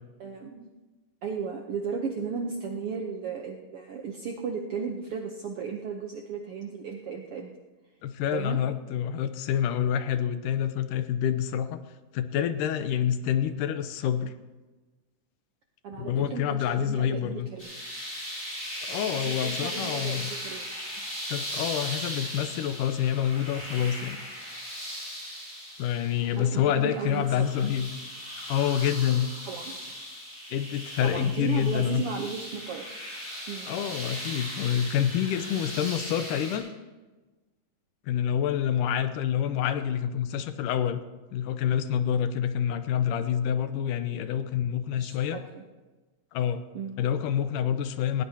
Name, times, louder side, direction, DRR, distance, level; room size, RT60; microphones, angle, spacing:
voice 1, 0.2-0.7 1.2-7.5 8.3-8.6 15.8-17.7 19.1-20.7 26.4-27.5 29.5-29.8 31.0-33.0 33.5-33.7 45.0-45.6 46.7-47.0, right 5 dB, 75° right, 2 dB, 1.3 m, -35 dB
voice 2, 8.0-11.8 12.1-14.3 16.0-17.5 18.8-20.3 21.3-24.2 25.8-27.9 28.5-29.3 30.5-32.0 33.7-36.7 38.0-41.0 41.3-45.4 46.3-46.6 47.0-48.2, left 9 dB, 90° left, 10 dB, 2.3 m, -27 dB
sound 1, 17.6-36.6, equal, 20° left, 6.2 m, -38 dB
19.0 x 17.5 x 2.9 m, 1.2 s
omnidirectional pair, 3.7 m